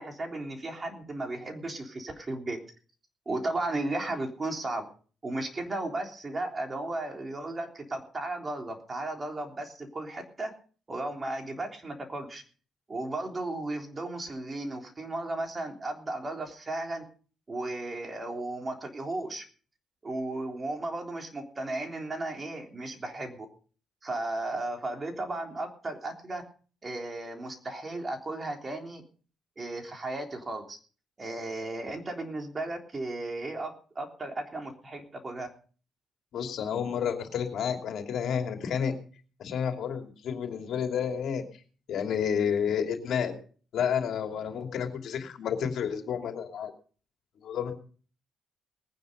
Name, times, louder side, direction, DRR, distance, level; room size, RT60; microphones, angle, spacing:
voice 1, 0.0-2.6 3.3-4.9 5.2-10.5 10.9-12.4 12.9-17.0 17.5-19.4 20.0-23.5 24.0-26.4 26.8-29.0 29.6-30.8 31.2-35.5, right 2 dB, 30° right, 4 dB, 3.4 m, -35 dB
voice 2, 36.3-38.9 39.4-41.4 41.9-43.4 43.7-46.7 47.4-47.7, left 7 dB, 70° left, 5 dB, 2.9 m, -30 dB
20.0 x 9.7 x 5.4 m, 0.42 s
cardioid pair, 90°, 0 cm